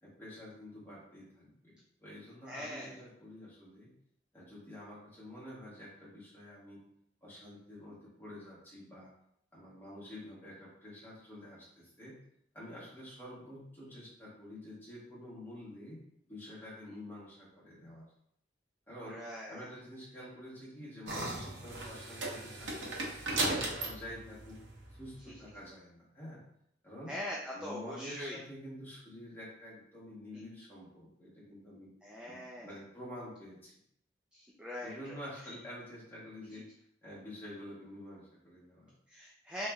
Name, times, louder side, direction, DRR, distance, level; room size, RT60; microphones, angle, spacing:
voice 1, 0.0-3.9 4.3-6.8 7.2-9.1 9.5-12.2 12.5-16.0 16.3-18.0 18.9-19.2 19.5-22.9 23.3-24.6 24.9-26.4 26.8-27.1 27.5-31.9 32.3-33.7 34.8-36.7 37.0-38.9, left 1 dB, 10° left, -8 dB, 1.4 m, -48 dB
voice 2, 2.5-3.0 19.1-19.6 27.1-28.4 30.3-30.4 32.0-32.7 34.3-35.2 39.1-39.7, left 1 dB, 5° right, -4 dB, 0.4 m, -42 dB
sound 1, 21.1-25.3, right 2 dB, 85° right, 0.8 m, -37 dB
3.1 x 3.0 x 3.4 m, 0.72 s
head